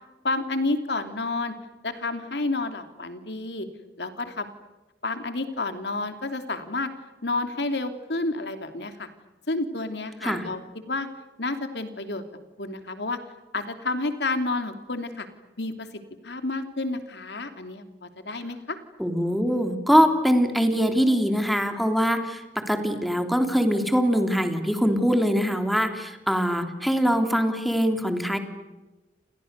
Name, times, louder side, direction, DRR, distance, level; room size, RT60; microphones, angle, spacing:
voice 1, 0.2-1.5 1.8-3.7 4.0-4.5 5.0-6.9 7.2-9.1 9.5-10.6 10.9-11.1 11.4-12.2 12.6-13.2 13.5-15.3 15.6-15.9 16.2-18.8, left 2 dB, 70° left, 8 dB, 3.0 m, -30 dB
voice 2, 19.0-28.4, equal, ahead, 6 dB, 3.3 m, -23 dB
30.0 x 29.5 x 6.8 m, 1.1 s
head